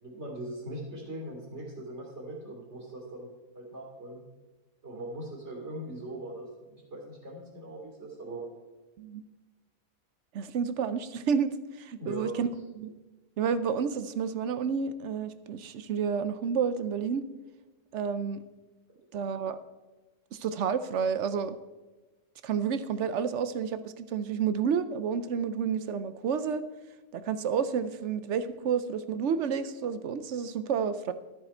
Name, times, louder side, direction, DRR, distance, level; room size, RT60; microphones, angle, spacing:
voice 1, 0.0-4.2 4.8-8.5 12.0-12.5, right 1 dB, 45° right, -2 dB, 3.5 m, -40 dB
voice 2, 10.3-12.5 12.8-12.9 13.4-17.2 17.9-18.4 19.1-19.6 20.3-21.6 22.4-26.6 27.1-31.1, right 6 dB, 65° right, 13 dB, 0.8 m, -30 dB
13.0 x 8.5 x 4.4 m, 1.2 s
omnidirectional pair, 1.6 m